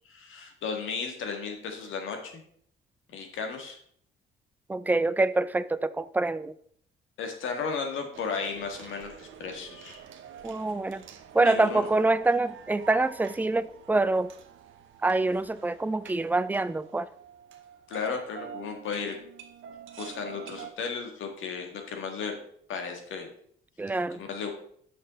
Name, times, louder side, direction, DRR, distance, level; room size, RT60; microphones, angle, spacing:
voice 1, 0.1-2.4 3.1-3.8 7.2-10.0 11.4-11.9 17.9-19.2 20.0-22.4 22.7-23.3 24.2-24.5, left 5 dB, 80° left, 1.8 m, -34 dB
voice 2, 4.7-6.5 10.4-11.0 11.3-14.3 15.0-17.1 23.8-24.2, right 2 dB, 10° right, 0.4 m, -26 dB
sound 1, 8.1-20.7, right 8 dB, 80° right, 0.9 m, -48 dB
6.4 x 6.0 x 5.2 m
cardioid pair, 90°, 20 cm